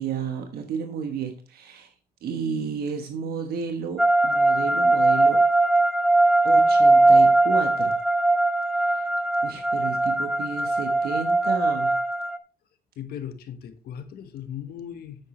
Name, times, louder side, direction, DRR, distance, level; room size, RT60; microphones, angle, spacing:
voice 1, 0.0-1.9 2.2-5.4 6.4-7.9 8.7-9.1 9.4-11.9, right 6 dB, 65° right, 1.2 m, -32 dB
sound 1, 4.0-12.4, right 2 dB, ahead, 0.7 m, -20 dB
voice 2, 13.0-15.2, left 9 dB, 65° left, 1.4 m, -37 dB
9.2 x 7.9 x 3.2 m
cardioid pair, 110°, 17 cm